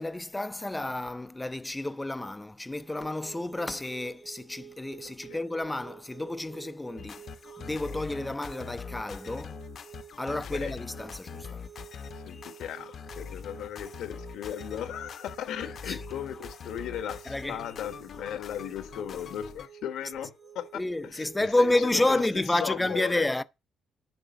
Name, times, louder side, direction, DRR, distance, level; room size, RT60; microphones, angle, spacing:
voice 1, 0.0-7.2 7.6-9.6 10.2-11.6 15.9-16.0 17.3-17.6 20.7-23.4, left 2 dB, 15° left, 0.5 m, -30 dB
sound 1, 2.7-21.5, right 9 dB, 20° right, 0.8 m, -50 dB
sound 2, 7.0-19.7, left 6 dB, 55° left, 0.8 m, -43 dB
voice 2, 12.2-20.8 21.1-21.7 22.1-23.3, left 10 dB, 80° left, 1.2 m, -37 dB
11.0 x 3.6 x 7.0 m
cardioid pair, 90°, 0 cm